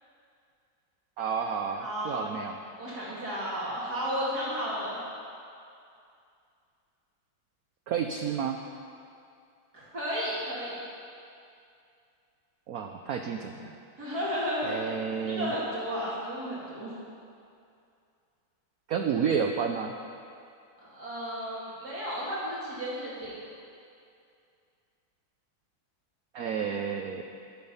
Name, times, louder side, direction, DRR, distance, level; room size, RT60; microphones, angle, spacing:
voice 1, 1.2-2.6 7.9-8.6 12.7-13.7 14.6-15.5 18.9-19.9 26.3-27.2, right 6 dB, 85° right, 5 dB, 0.8 m, -30 dB
voice 2, 1.8-2.3 2.8-5.0 9.7-10.8 14.0-14.9 15.3-16.9 20.8-23.3, equal, 45° right, -8 dB, 3.1 m, -33 dB
12.5 x 10.5 x 5.6 m, 2.5 s
omnidirectional pair, 2.3 m